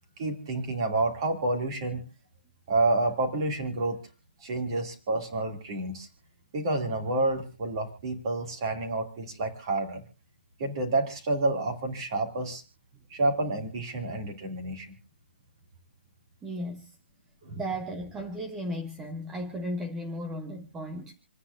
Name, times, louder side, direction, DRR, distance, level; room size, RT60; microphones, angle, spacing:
voice 1, 0.2-2.0 2.7-4.0 4.4-6.1 6.5-10.0 10.6-12.6 13.1-14.9 17.4-17.6, right 2 dB, 25° right, 4 dB, 2.5 m, -29 dB
voice 2, 16.4-16.9 17.5-21.1, equal, 5° right, 4 dB, 0.6 m, -35 dB
28.0 x 9.8 x 2.5 m, 0.33 s
hypercardioid pair, 175°, 6 cm